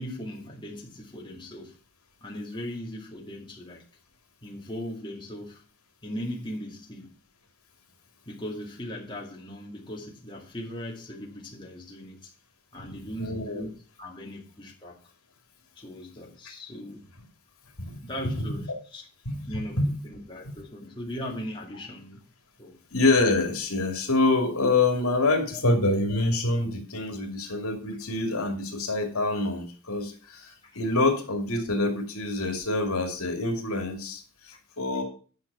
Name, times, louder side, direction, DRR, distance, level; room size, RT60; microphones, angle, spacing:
voice 1, 0.0-1.8 2.2-3.8 4.4-5.6 6.0-7.1 8.3-12.3 12.7-13.7 14.0-15.0 15.8-17.0 18.0-19.0 19.5-22.2 22.6-22.8 25.5-25.6 30.6-30.8 34.5-34.6, left 1 dB, 20° left, 2.2 m, -38 dB
voice 2, 13.2-13.6 17.8-18.0 18.3-18.6 19.2-19.9 22.9-35.0, left 2 dB, 75° left, 2.6 m, -26 dB
10.5 x 5.9 x 5.7 m
head